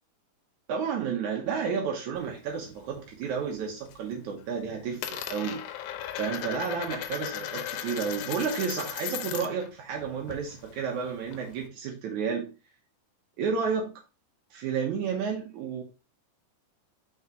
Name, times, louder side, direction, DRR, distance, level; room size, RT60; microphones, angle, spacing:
voice 1, 0.7-5.6 6.1-12.5 13.4-14.0 14.5-15.8, right 6 dB, 85° right, 1.7 m, -31 dB
Coin (dropping), 2.2-3.3 3.6-4.1 4.4-9.7 10.0-11.7, left 10 dB, 80° left, 2.8 m, -37 dB
6.1 x 6.0 x 3.0 m
omnidirectional pair, 5.0 m